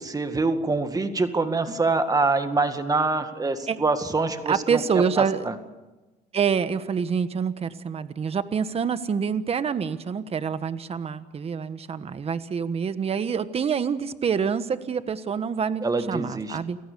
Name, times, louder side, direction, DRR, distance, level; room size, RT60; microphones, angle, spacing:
voice 1, 0.0-4.8 5.2-5.5 15.8-16.6, right 3 dB, 20° right, 8 dB, 2.0 m, -25 dB
voice 2, 4.5-5.4 6.3-16.8, right 6 dB, 35° right, 12 dB, 1.3 m, -26 dB
29.5 x 17.5 x 7.0 m, 1.1 s
cardioid pair, 110°, 17 cm